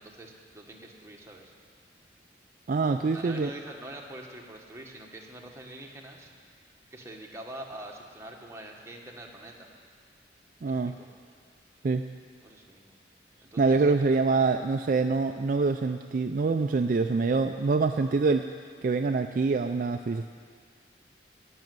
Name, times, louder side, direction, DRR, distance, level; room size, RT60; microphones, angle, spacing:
voice 1, 0.0-1.5 3.1-6.3 6.9-9.7 10.7-11.1 12.4-12.9 13.4-13.9, right 1 dB, 15° right, -1 dB, 1.4 m, -45 dB
voice 2, 2.7-3.5 10.6-10.9 11.8-12.0 13.6-18.4 18.8-20.3, right 4 dB, 50° right, 6 dB, 0.4 m, -25 dB
15.5 x 6.3 x 9.3 m, 2.1 s
head